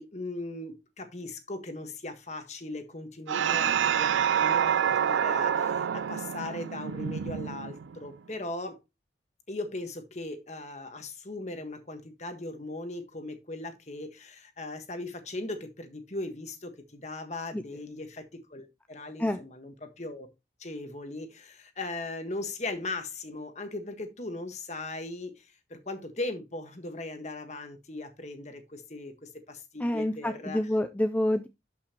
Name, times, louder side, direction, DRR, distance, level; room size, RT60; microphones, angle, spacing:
voice 1, 0.0-8.8 9.5-20.3 20.6-30.6, left 2 dB, 40° left, 1.4 m, -38 dB
sound 1, 3.3-8.1, right 8 dB, 90° right, 0.4 m, -27 dB
voice 2, 29.8-31.5, left 1 dB, 10° left, 0.4 m, -27 dB
11.5 x 5.6 x 2.9 m
head